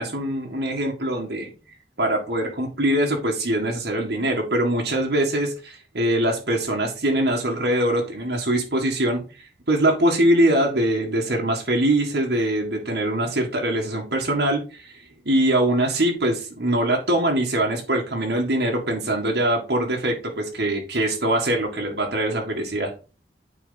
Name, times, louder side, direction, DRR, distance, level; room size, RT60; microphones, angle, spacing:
voice 1, 0.0-1.5 2.0-9.2 9.7-14.9 15.3-22.9, right 1 dB, 75° right, 0 dB, 1.7 m, -23 dB
8.9 x 4.0 x 3.9 m, 0.32 s
head